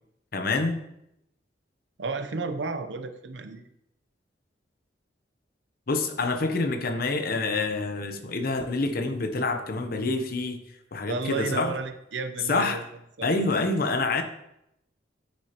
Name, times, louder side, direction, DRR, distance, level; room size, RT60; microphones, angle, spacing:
voice 1, 0.3-0.8 5.9-10.6 10.9-11.7 12.5-12.8 13.2-14.2, left 3 dB, 55° left, 7 dB, 0.8 m, -27 dB
voice 2, 2.0-3.7 11.1-12.8 13.2-13.3, right 4 dB, 75° right, 9 dB, 0.7 m, -32 dB
9.7 x 6.2 x 2.9 m, 0.80 s
head